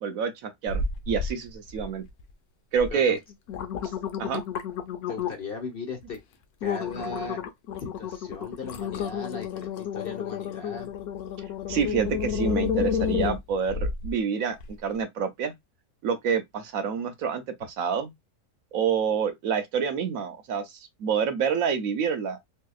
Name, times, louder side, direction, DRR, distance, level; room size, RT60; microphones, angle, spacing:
voice 1, 0.0-2.0 2.7-3.2 3.8-3.9 4.2-4.4 11.7-14.6 14.8-15.5 16.0-18.1 18.7-22.4, right 7 dB, 70° right, 1.1 m, -27 dB
sound 1, 0.7-1.3 1.7-2.2 2.8-2.9 3.3-5.5 6.0-6.2 6.6-14.1 14.6-14.7, left 6 dB, 85° left, 1.2 m, -30 dB
voice 2, 5.1-6.2 6.6-7.4 7.8-10.9, left 3 dB, 45° left, 1.0 m, -37 dB
3.7 x 2.7 x 2.3 m
omnidirectional pair, 1.6 m